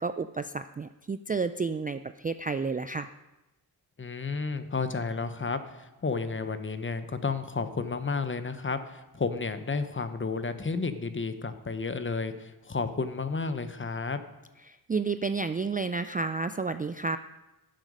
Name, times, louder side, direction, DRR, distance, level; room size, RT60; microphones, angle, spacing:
voice 1, 0.0-3.1 14.7-17.2, right 4 dB, 20° right, 10 dB, 0.3 m, -31 dB
voice 2, 4.0-14.2, left 4 dB, 30° left, 10 dB, 0.8 m, -32 dB
12.0 x 7.5 x 5.3 m, 1.0 s
wide cardioid pair, 85°, 42 cm